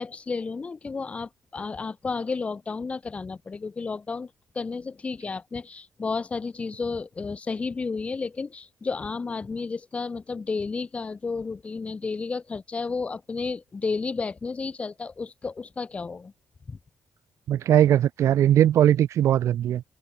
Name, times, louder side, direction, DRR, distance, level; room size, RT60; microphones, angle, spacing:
voice 1, 0.0-4.3 4.6-16.3 16.7-16.8, left 4 dB, 25° left, 5.2 m, -32 dB
voice 2, 17.5-19.8, right 11 dB, 70° right, 1.5 m, -20 dB
wide cardioid pair, 170°, 5 cm